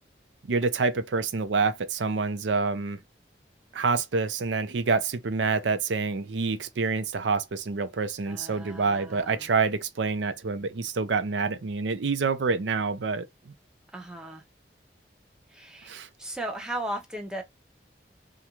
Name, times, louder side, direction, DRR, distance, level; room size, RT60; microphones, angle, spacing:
voice 1, 0.5-3.0 3.7-13.5 15.9-16.1, right 4 dB, 90° right, 0.5 m, -27 dB
voice 2, 8.2-9.5 13.9-14.4 15.5-17.4, right 1 dB, 5° right, 0.6 m, -37 dB
2.5 x 2.2 x 2.9 m
head